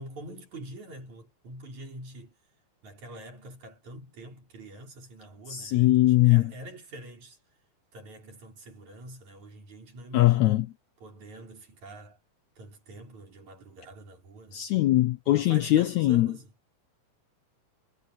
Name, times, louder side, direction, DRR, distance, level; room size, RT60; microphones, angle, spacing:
voice 1, 0.0-2.4 2.8-7.4 7.9-10.7 11.0-12.2 12.6-14.7 15.3-16.5, right 1 dB, 55° right, 6.7 m, -45 dB
voice 2, 5.5-6.5 10.1-10.7 14.5-16.3, left 16 dB, 75° left, 1.8 m, -21 dB
omnidirectional pair, 3.9 m